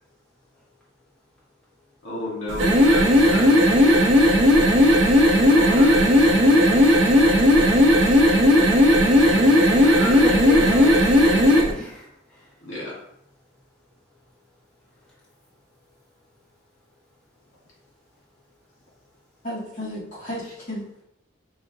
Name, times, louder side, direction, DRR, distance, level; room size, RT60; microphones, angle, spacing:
voice 1, 2.0-4.1 5.3-6.2 9.0-10.2 12.6-13.0, left 1 dB, 80° left, -5 dB, 1.5 m, -32 dB
sound 1, 2.5-11.7, left 1 dB, 65° right, 0.8 m, -16 dB
voice 2, 10.0-12.5, left 3 dB, 5° left, -8 dB, 1.2 m, -33 dB
voice 3, 19.4-21.0, left 1 dB, 40° left, -7 dB, 1.6 m, -33 dB
5.6 x 2.5 x 2.8 m, 0.75 s
head